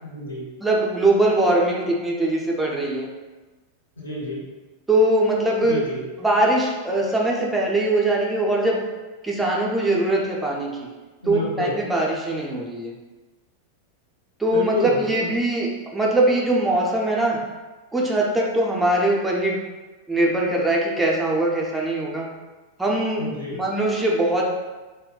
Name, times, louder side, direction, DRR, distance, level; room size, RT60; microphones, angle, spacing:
voice 1, 0.0-0.4 4.0-4.4 5.6-6.0 11.2-11.7 14.5-15.3 23.2-23.6, left 2 dB, 75° left, -4 dB, 0.8 m, -29 dB
voice 2, 0.6-3.1 4.9-5.8 6.2-8.8 9.2-10.9 11.3-12.9 14.4-17.4 17.9-19.6 20.1-22.3 22.8-23.2 23.5-24.4, right 1 dB, 10° right, -2 dB, 0.4 m, -21 dB
2.2 x 2.1 x 3.7 m, 1.2 s
figure-of-eight pair, 90°, 0 cm